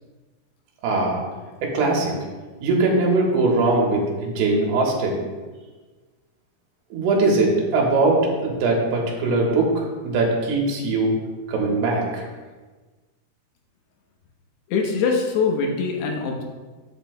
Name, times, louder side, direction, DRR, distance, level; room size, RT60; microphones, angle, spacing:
voice 1, 0.8-1.2 1.6-2.1 2.6-5.2 6.9-11.2 11.5-12.2, right 2 dB, 80° right, -1 dB, 3.2 m, -21 dB
voice 2, 14.7-16.4, left 5 dB, 80° left, 2 dB, 3.1 m, -23 dB
11.5 x 8.2 x 2.3 m, 1.3 s
omnidirectional pair, 4.7 m